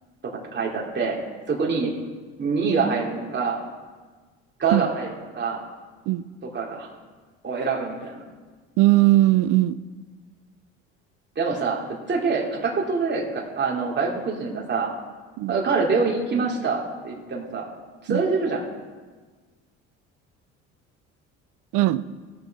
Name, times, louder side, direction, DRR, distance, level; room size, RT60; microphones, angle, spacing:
voice 1, 0.2-1.2 1.5-1.9 2.4-3.6 4.6-5.6 6.4-6.9 7.4-8.2 11.4-14.9 15.5-17.7 18.0-18.6, right 4 dB, 35° right, -2 dB, 2.7 m, -25 dB
voice 2, 8.8-9.8 15.4-15.5 18.1-18.2 21.7-22.0, right 16 dB, 70° right, 16 dB, 0.6 m, -19 dB
16.0 x 7.0 x 5.3 m, 1.4 s
supercardioid pair, 75°, 32 cm